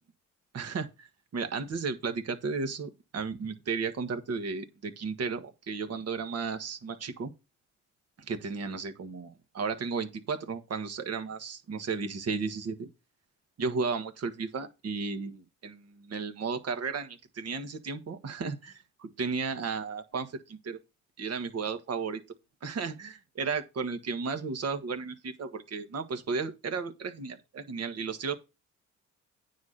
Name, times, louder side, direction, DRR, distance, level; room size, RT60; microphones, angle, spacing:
voice 1, 0.5-7.3 8.3-12.9 13.6-20.8 21.2-22.2 22.6-28.3, right 5 dB, 55° right, 1.6 m, -34 dB
9.4 x 4.3 x 6.5 m
cardioid pair, 90°, 30 cm